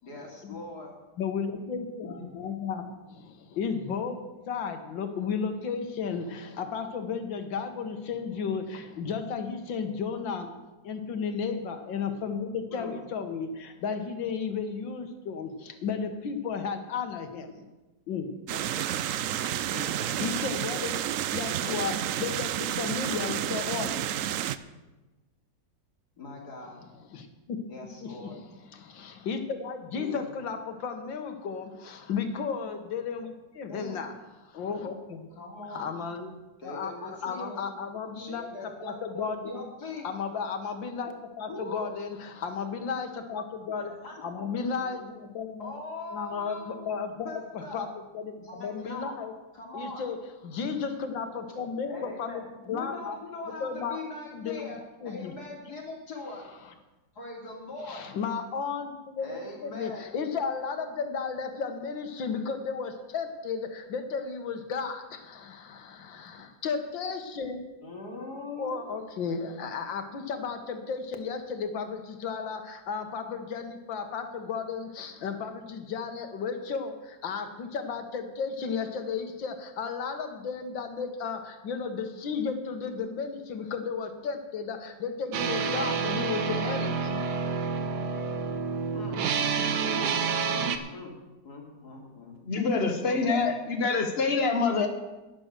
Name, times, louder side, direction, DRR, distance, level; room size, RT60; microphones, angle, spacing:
voice 1, 0.0-0.9 2.0-2.3 12.7-12.9 19.7-20.2 21.6-21.8 26.2-26.8 27.7-28.4 29.9-30.2 33.7-34.0 35.3-36.0 36.6-37.7 38.1-40.1 41.5-41.9 43.7-44.9 45.6-47.0 47.2-47.8 48.4-49.1 49.5-50.0 51.9-54.8 55.0-56.4 57.1-58.1 59.2-60.0 67.8-68.8 88.9-89.3 90.9-92.4 93.0-93.4, left 3 dB, 60° left, -1 dB, 3.4 m, -41 dB
voice 2, 1.2-4.2 4.5-10.5 10.8-17.7 18.1-19.3 19.7-19.8 20.2-20.9 21.3-24.1 27.1-27.6 28.0-28.4 28.7-34.1 34.4-35.3 35.7-36.3 36.6-38.5 38.8-39.7 40.0-44.0 44.2-45.7 46.1-47.9 48.1-49.3 49.7-50.2 50.4-52.4 52.7-53.2 53.6-54.0 54.3-54.7 55.0-55.3 57.8-67.7 68.6-87.2, left 5 dB, 90° left, 7 dB, 2.1 m, -34 dB
sound 1, 18.5-24.6, right 11 dB, 85° right, 0.7 m, -30 dB
sound 2, 85.3-90.8, right 5 dB, 65° right, 1.5 m, -28 dB
voice 3, 92.4-94.9, left 4 dB, 35° left, 5 dB, 1.5 m, -26 dB
11.0 x 10.5 x 6.7 m, 1.1 s
omnidirectional pair, 2.0 m